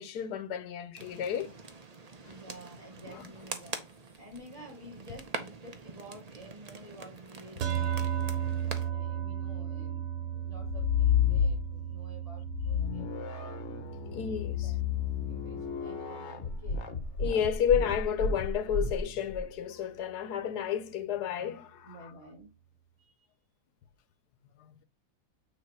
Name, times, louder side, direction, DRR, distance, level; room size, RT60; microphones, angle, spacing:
voice 1, 0.0-1.5 2.2-2.4 3.1-3.3 8.3-8.4 13.0-13.1 14.0-14.7 17.2-22.1 24.7-24.8, left 8 dB, 75° left, 1.2 m, -32 dB
sound 1, 0.9-8.9, right 4 dB, 50° right, 0.4 m, -44 dB
voice 2, 2.2-8.3 8.7-10.0 10.3-13.1 13.4-13.6 14.1-14.3 14.6-14.7 15.2-16.8 21.8-22.5 23.0-23.1, right 1 dB, 10° right, 2.6 m, -51 dB
sound 2, 7.6-18.1, right 9 dB, 85° right, 1.5 m, -36 dB
sound 3, 10.6-12.0 12.5-19.4, left 7 dB, 50° left, 1.0 m, -31 dB
8.9 x 3.0 x 4.4 m
omnidirectional pair, 1.8 m